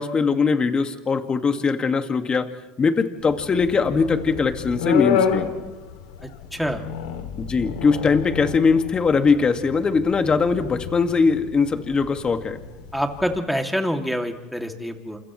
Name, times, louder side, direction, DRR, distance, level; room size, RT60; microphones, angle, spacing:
voice 1, 0.0-2.5 2.8-5.5 7.4-12.6, left 5 dB, 30° left, 7 dB, 1.9 m, -21 dB
sound 1, 3.2-13.4, left 7 dB, 85° left, 2.7 m, -30 dB
voice 2, 6.5-6.8 12.9-15.2, equal, ahead, 3 dB, 2.5 m, -26 dB
29.5 x 27.5 x 3.2 m, 1.1 s
supercardioid pair, 95°, 3 cm